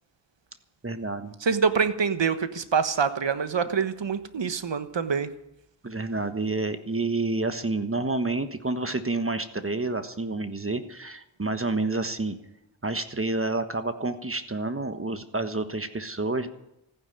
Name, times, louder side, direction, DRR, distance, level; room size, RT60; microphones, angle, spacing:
voice 1, 0.8-1.3 5.8-12.4 12.8-16.5, right 2 dB, 25° right, 9 dB, 1.3 m, -29 dB
voice 2, 1.4-5.3, right 6 dB, 60° right, 11 dB, 1.3 m, -25 dB
15.0 x 9.6 x 9.5 m, 0.83 s
cardioid pair, 50°, 49 cm